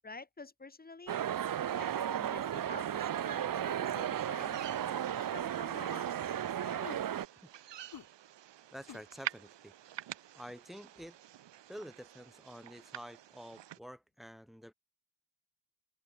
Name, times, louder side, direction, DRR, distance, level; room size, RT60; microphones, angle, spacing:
voice 1, 0.0-1.2 1.8-6.9, left 3 dB, 20° left, 3.0 m, -50 dB
sound 1, 1.1-7.3, right 10 dB, 50° right, 1.1 m, -34 dB
sound 2, 4.2-13.8, right 12 dB, 75° right, 2.3 m, -48 dB
sound 3, 4.4-4.6 5.1-5.4 5.9-6.1 6.8-7.0 7.9-8.0 8.9-9.0, left 9 dB, 55° left, 3.2 m, -49 dB
voice 2, 8.7-9.7 10.4-11.2 11.7-14.7, equal, ahead, 5.2 m, -49 dB
cardioid pair, 130°, 43 cm